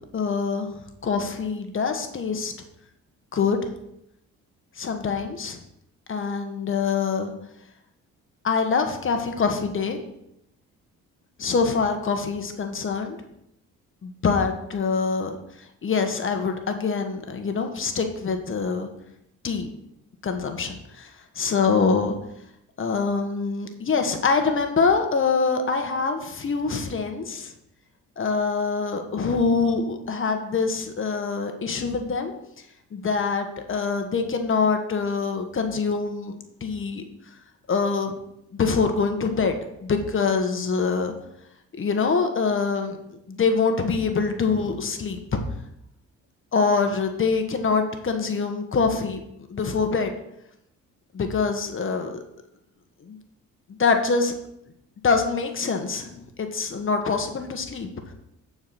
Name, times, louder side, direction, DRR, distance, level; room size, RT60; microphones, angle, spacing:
voice 1, 0.1-0.7 1.0-2.5 3.3-3.6 4.8-5.6 6.1-7.3 8.4-10.0 11.4-13.2 14.0-15.3 15.8-18.9 19.4-19.7 20.2-21.1 21.3-22.1 22.8-27.5 28.2-32.3 32.9-36.3 36.6-37.0 37.7-38.1 38.5-41.1 41.7-43.0 43.3-45.4 46.5-49.2 49.5-50.1 51.1-52.2 53.0-53.2 53.8-54.3 55.0-56.1 56.4-57.9, left 5 dB, 40° left, 5 dB, 1.3 m, -24 dB
8.8 x 4.7 x 5.8 m, 0.80 s
cardioid pair, 90°, 30 cm